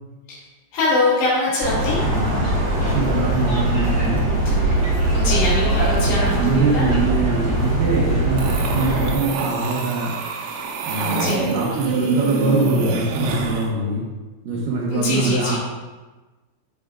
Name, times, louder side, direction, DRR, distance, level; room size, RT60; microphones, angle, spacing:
voice 1, 0.7-2.0 4.5-4.8 5.1-6.9 11.1-11.5 14.9-15.6, left 2 dB, 80° left, -9 dB, 5.0 m, -23 dB
sound 1, 1.6-9.1, right 1 dB, 25° right, 1.5 m, -21 dB
voice 2, 2.8-4.2 6.0-10.1 10.8-14.0 14.4-15.6, right 3 dB, 65° right, -4 dB, 2.4 m, -23 dB
sound 2, 8.4-13.7, right 4 dB, 85° right, 3.1 m, -25 dB
15.5 x 5.3 x 2.4 m, 1.2 s
omnidirectional pair, 5.0 m